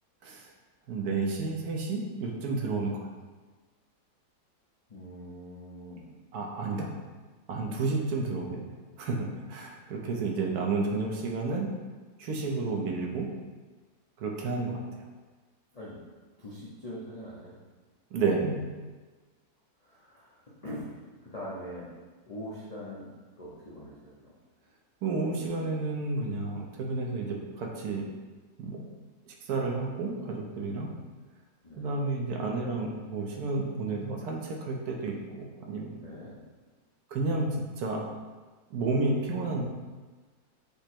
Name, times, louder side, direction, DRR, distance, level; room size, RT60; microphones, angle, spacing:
voice 1, 0.9-3.1 6.3-6.9 7.5-11.7 12.2-13.3 14.2-15.1 18.1-18.6 25.0-28.1 28.6-28.8 29.3-30.9 31.8-36.0 37.1-38.1 38.7-39.6, right 3 dB, 70° right, 0 dB, 1.0 m, -31 dB
voice 2, 4.9-6.1 15.7-16.0 16.4-17.6 19.8-21.9 22.3-24.3 30.6-31.0 31.6-31.9 36.0-36.3, equal, 80° left, -7 dB, 0.3 m, -43 dB
5.1 x 2.0 x 4.3 m, 1.3 s
omnidirectional pair, 1.8 m